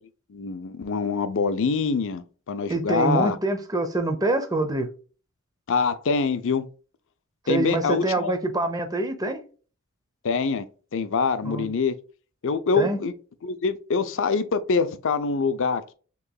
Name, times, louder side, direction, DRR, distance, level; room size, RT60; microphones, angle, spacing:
voice 1, 0.3-3.4 5.7-6.7 7.5-8.3 10.2-10.7 10.9-11.9 12.4-13.1 13.4-15.9, left 4 dB, 60° left, 0.5 m, -25 dB
voice 2, 2.7-4.9 7.5-9.4 11.4-11.7 12.8-13.0, right 2 dB, 15° right, 0.7 m, -25 dB
6.5 x 3.0 x 2.3 m
head